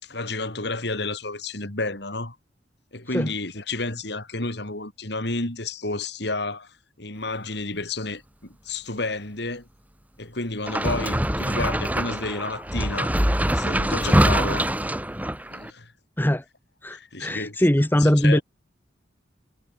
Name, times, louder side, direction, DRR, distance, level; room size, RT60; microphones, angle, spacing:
voice 1, 0.0-2.4 2.9-9.7 10.2-13.2 13.5-14.7 15.5-15.9 16.9-17.7 18.0-18.4, left 2 dB, 65° left, 4.3 m, -31 dB
sound 1, 10.7-15.7, right 1 dB, 10° right, 4.7 m, -23 dB
voice 2, 16.8-18.4, equal, 10° left, 1.3 m, -21 dB
head